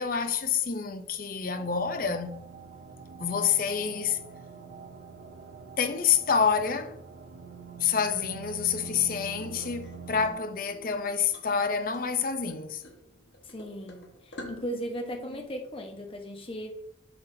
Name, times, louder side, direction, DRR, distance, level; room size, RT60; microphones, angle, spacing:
voice 1, 0.0-2.4 3.2-4.2 5.8-6.9 7.8-12.8, left 6 dB, 50° left, 0.6 m, -27 dB
sound 1, 1.5-10.3, right 6 dB, 80° right, 0.6 m, -45 dB
sound 2, 8.8-15.5, left 2 dB, 80° left, 1.2 m, -48 dB
voice 2, 13.4-16.8, equal, 30° left, 1.0 m, -37 dB
7.8 x 5.7 x 2.7 m
head